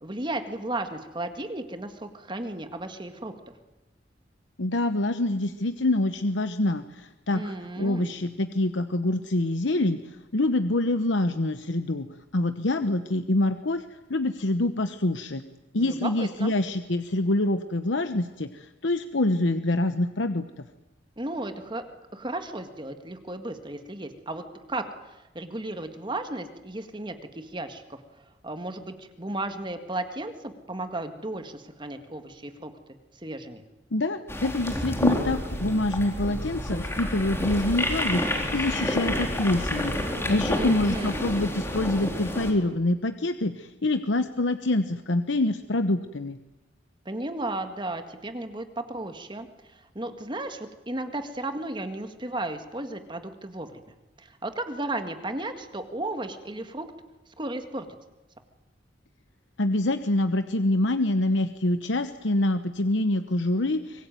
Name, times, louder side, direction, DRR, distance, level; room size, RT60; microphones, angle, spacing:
voice 1, 0.0-3.3 7.3-8.1 15.8-16.5 21.2-21.8 22.1-28.0 28.4-32.7 33.1-33.6 40.5-41.2 47.1-53.8 54.2-56.9 57.4-57.9, right 2 dB, 25° right, 7 dB, 1.8 m, -34 dB
voice 2, 4.6-12.1 12.3-13.8 14.1-15.4 15.7-20.4 33.9-46.4 59.6-64.1, left 2 dB, 80° left, 9 dB, 1.0 m, -26 dB
sound 1, 34.3-42.5, left 1 dB, 15° left, 3.8 m, -29 dB
24.5 x 21.0 x 9.2 m, 1.0 s
head